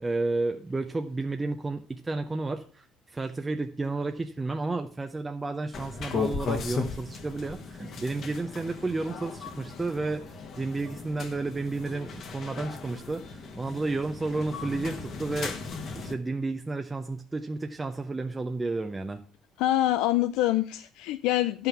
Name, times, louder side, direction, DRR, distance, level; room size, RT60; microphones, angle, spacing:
voice 1, 0.0-10.2 10.6-15.6 15.9-19.2, right 3 dB, 15° right, 6 dB, 0.6 m, -32 dB
sound 1, 5.7-16.1, left 5 dB, 50° left, 1.5 m, -37 dB
voice 2, 19.6-21.7, left 14 dB, 90° left, 11 dB, 0.4 m, -25 dB
11.0 x 5.7 x 5.8 m, 0.43 s
cardioid pair, 125°, 0 cm